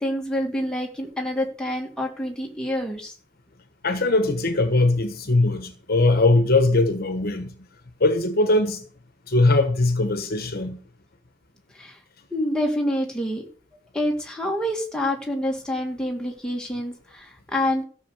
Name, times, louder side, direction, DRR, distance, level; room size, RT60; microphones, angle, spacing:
voice 1, 0.0-3.1 11.8-12.0 12.3-13.4 13.9-17.8, left 1 dB, 5° left, 2.5 m, -27 dB
voice 2, 3.8-7.5 8.0-8.8 9.3-10.8, left 2 dB, 50° left, 1.4 m, -20 dB
14.0 x 6.6 x 6.7 m
head